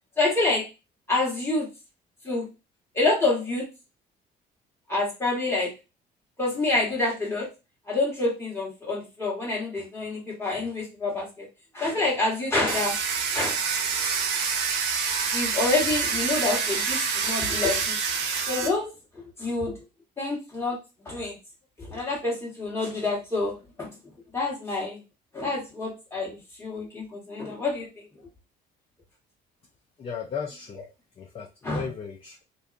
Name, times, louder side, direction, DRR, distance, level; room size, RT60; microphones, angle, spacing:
voice 1, 0.2-0.6 1.1-1.7 2.2-2.4 2.9-3.7 4.9-5.7 6.4-7.5 7.9-11.5 11.7-12.9 13.3-13.6 15.3-18.0 18.5-18.9 19.4-19.8 20.2-20.8 21.0-21.4 21.8-23.9 24.3-25.0 25.3-28.0 31.6-31.8, left 2 dB, 15° left, -4 dB, 1.5 m, -27 dB
Domestic sounds home sounds, 12.7-18.7, right 6 dB, 85° right, 0.6 m, -27 dB
voice 2, 30.0-30.8 31.2-32.4, left 6 dB, 35° left, 1 dB, 0.5 m, -35 dB
2.6 x 2.2 x 2.5 m, 0.28 s
cardioid pair, 110°, 17 cm